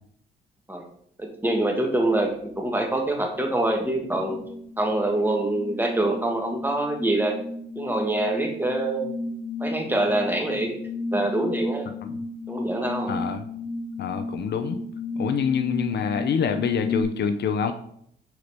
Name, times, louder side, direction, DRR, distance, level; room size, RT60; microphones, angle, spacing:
voice 1, 1.2-4.4 4.8-7.4 7.7-9.1 9.6-10.8 11.1-11.9 12.5-13.1, right 1 dB, 10° right, 2 dB, 1.4 m, -25 dB
sound 1, 1.5-1.8 2.2-17.0, left 2 dB, 35° left, 1.5 m, -34 dB
voice 2, 13.1-13.5 14.0-14.8 15.2-17.7, left 7 dB, 60° left, 8 dB, 0.6 m, -26 dB
9.3 x 4.0 x 3.5 m, 0.68 s
cardioid pair, 90°, 20 cm